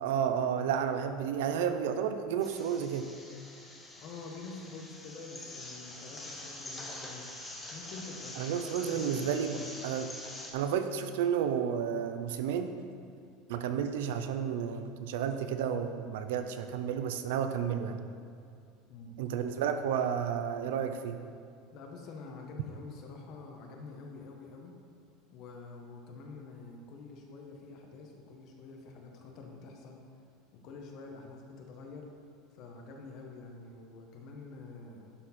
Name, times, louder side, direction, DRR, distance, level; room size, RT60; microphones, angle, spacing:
voice 1, 0.0-3.1 8.4-10.1 10.5-12.7 13.5-18.0 19.2-21.2, right 8 dB, 80° right, 8 dB, 0.5 m, -31 dB
sound 1, 2.4-10.5, left 2 dB, 10° left, 0.9 m, -45 dB
voice 2, 4.0-7.3 7.7-9.7 18.9-19.2 21.7-24.7 25.3-30.0 30.5-32.1 32.5-35.1, left 3 dB, 40° left, 1 dB, 1.1 m, -47 dB
11.0 x 4.3 x 4.3 m, 2.3 s
supercardioid pair, 165°, 0 cm